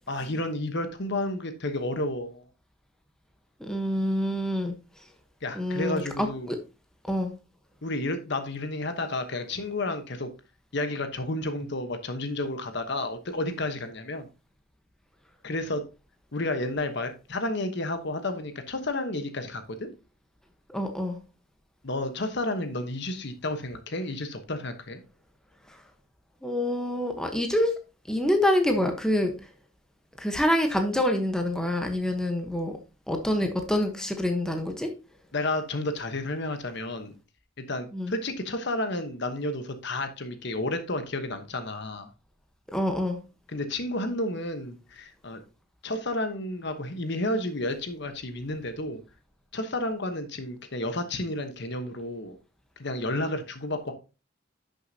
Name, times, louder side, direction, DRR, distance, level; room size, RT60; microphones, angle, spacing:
voice 1, 0.1-2.5 5.4-6.5 7.8-10.3 10.7-14.3 15.4-15.8 16.3-19.9 21.8-25.0 35.3-37.1 37.6-42.1 43.5-45.4 45.8-49.0 49.5-52.4 52.8-53.9, left 2 dB, 55° left, 1.1 m, -31 dB
voice 2, 3.6-4.7 5.5-6.6 7.1-7.3 20.7-21.2 26.4-27.7 28.1-29.3 30.2-32.7 33.1-34.9 37.9-38.1 42.7-43.2, left 1 dB, 5° left, 1.0 m, -26 dB
11.0 x 6.5 x 2.8 m
head